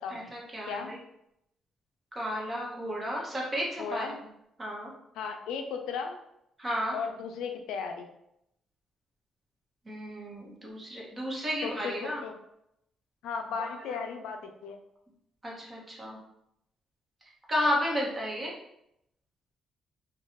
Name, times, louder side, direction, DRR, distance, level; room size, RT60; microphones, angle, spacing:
voice 1, 0.1-1.0 2.1-4.1 4.6-4.9 6.6-7.0 9.9-12.2 13.6-14.0 15.4-16.2 17.5-18.5, equal, 25° right, -3 dB, 1.0 m, -33 dB
voice 2, 3.8-4.2 5.2-6.2 6.9-8.1 11.6-11.9 12.2-12.3 13.2-14.8, left 6 dB, 90° left, 4 dB, 0.3 m, -35 dB
2.6 x 2.3 x 2.9 m, 0.78 s
cardioid pair, 90°, 0 cm